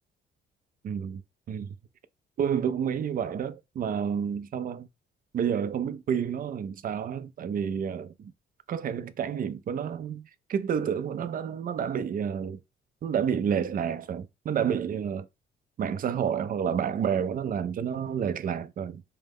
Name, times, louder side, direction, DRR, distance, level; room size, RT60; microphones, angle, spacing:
voice 1, 0.8-1.2 1.5-1.8 2.4-4.9 5.3-8.3 8.7-12.6 13.0-15.3 15.8-19.0, right 8 dB, 45° right, 0.4 m, -29 dB
4.6 x 2.1 x 3.4 m
cardioid pair, 90°, 20 cm